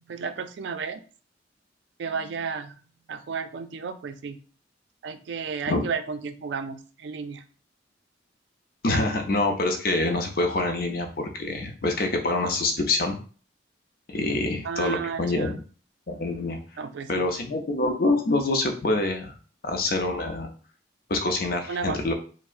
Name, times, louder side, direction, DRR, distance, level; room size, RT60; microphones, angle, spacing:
voice 1, 0.1-1.0 2.0-2.7 3.1-4.4 5.0-7.4 14.6-15.5 16.8-17.3 21.7-22.0, right 5 dB, 75° right, 10 dB, 0.4 m, -33 dB
voice 2, 8.8-13.2 14.1-15.6 16.1-16.6 17.1-19.3 19.6-20.5 21.1-22.1, left 2 dB, 55° left, 4 dB, 0.6 m, -26 dB
4.4 x 2.0 x 2.5 m, 0.40 s
head